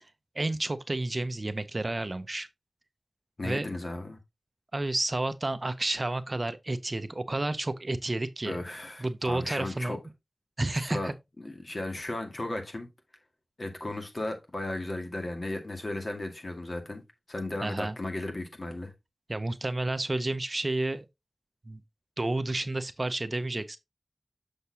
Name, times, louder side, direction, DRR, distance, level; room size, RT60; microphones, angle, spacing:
voice 1, 0.3-2.5 3.4-3.7 4.7-8.6 9.0-10.0 10.6-11.1 17.6-18.0 19.3-21.0 21.7-21.8 22.2-23.8, right 2 dB, 40° right, 0.6 m, -31 dB
voice 2, 3.4-4.2 8.4-10.0 10.7-11.1 11.4-12.9 13.6-17.0 17.3-18.9, left 2 dB, 50° left, 2.0 m, -35 dB
6.8 x 6.5 x 2.8 m
wide cardioid pair, 70°, 0 cm